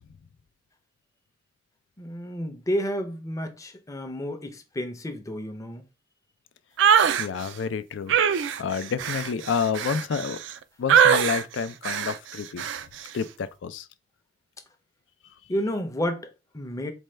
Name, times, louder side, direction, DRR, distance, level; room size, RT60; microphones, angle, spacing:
voice 1, 2.0-5.9 15.5-16.9, equal, 15° left, 0.5 m, -31 dB
sound 1, 6.8-7.3 8.1-10.5 10.9-11.4 11.8-12.2 12.6-12.8, right 7 dB, 75° right, 0.3 m, -21 dB
voice 2, 7.2-8.2 8.6-10.4 10.8-12.6 13.1-13.8, left 6 dB, 75° left, 0.4 m, -29 dB
4.3 x 2.2 x 3.2 m
head